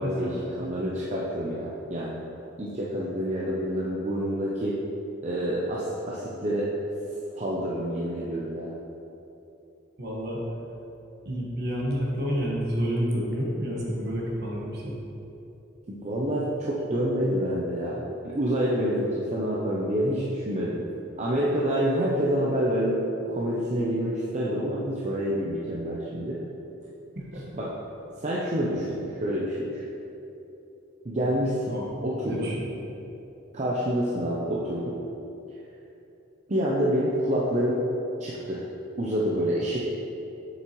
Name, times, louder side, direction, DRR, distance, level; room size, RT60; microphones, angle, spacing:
voice 1, 0.0-0.4 10.0-10.4 11.2-15.0 27.1-27.5 31.7-32.0 32.2-32.7, equal, 55° right, -4 dB, 1.4 m, -29 dB
voice 2, 0.6-2.2 2.6-4.7 5.2-6.7 7.3-8.7 15.9-20.8 21.2-23.0 23.3-26.4 27.6-27.7 28.2-29.8 31.0-31.7 32.0-32.5 33.5-35.0 36.5-37.8 38.2-38.6 39.0-39.9, equal, 35° right, -5 dB, 0.6 m, -27 dB
7.3 x 6.8 x 3.0 m, 3.0 s
head